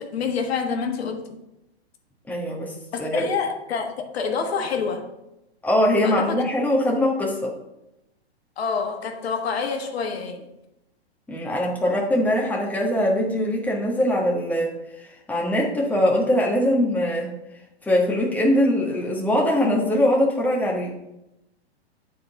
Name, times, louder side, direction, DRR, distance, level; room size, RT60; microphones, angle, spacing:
voice 1, 0.0-1.4 2.9-5.0 6.0-6.5 8.6-10.4, left 5 dB, 70° left, 4 dB, 1.2 m, -27 dB
voice 2, 2.3-2.7 3.0-3.3 5.6-7.5 11.3-17.4 17.8-20.9, left 1 dB, 5° left, -2 dB, 1.3 m, -22 dB
9.2 x 3.9 x 3.9 m, 0.90 s
hypercardioid pair, 125°, 33 cm